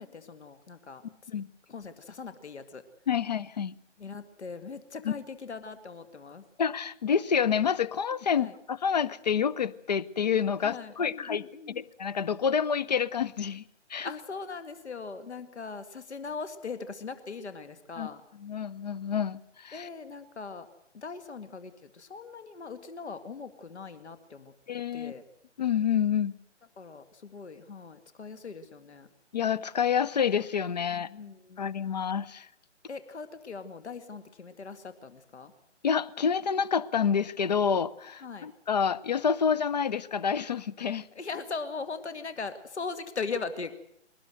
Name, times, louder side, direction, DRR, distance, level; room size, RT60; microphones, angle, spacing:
voice 1, 0.0-1.3 1.7-2.8 4.0-6.4 8.3-8.6 10.6-11.8 14.0-18.2 19.7-20.7 20.9-24.5 24.9-25.2 26.8-29.1 30.9-31.7 32.9-35.5 38.2-38.5 41.2-43.8, left 4 dB, 65° left, 11 dB, 2.1 m, -40 dB
voice 2, 3.1-3.8 5.0-5.1 6.6-11.4 11.8-13.6 13.9-14.1 18.0-18.1 18.4-19.9 24.7-25.1 25.6-26.3 29.3-31.1 31.6-32.5 35.8-41.1, left 7 dB, 35° left, 20 dB, 0.8 m, -28 dB
22.5 x 19.0 x 7.9 m, 0.72 s
figure-of-eight pair, 145°, 37 cm